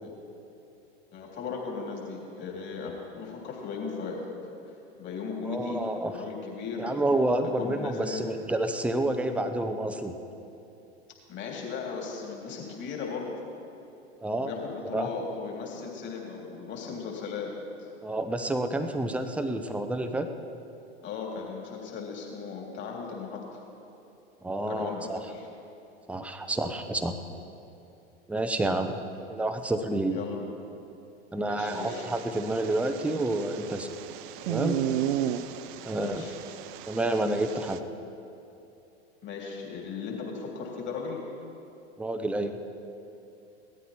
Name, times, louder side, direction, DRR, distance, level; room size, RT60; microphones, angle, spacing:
voice 1, 1.1-4.2 5.0-5.8 6.1-7.0 7.4-8.3 11.3-13.4 14.4-17.9 21.0-23.6 24.7-25.5 30.1-30.4 31.4-32.0 35.9-36.3 39.2-41.2, left 5 dB, 35° left, -1 dB, 3.3 m, -37 dB
voice 2, 5.5-6.2 6.8-10.2 14.2-14.5 14.9-15.1 18.0-20.3 24.4-25.2 26.1-27.2 28.3-29.0 29.3-30.2 31.3-33.9 34.4-34.8 35.8-36.2 36.9-37.8 42.0-42.6, right 1 dB, 5° right, 7 dB, 0.7 m, -29 dB
sound 1, 31.7-37.8, right 12 dB, 50° right, 0.7 m, -34 dB
18.0 x 13.5 x 4.3 m, 2.8 s
figure-of-eight pair, 90°, 33 cm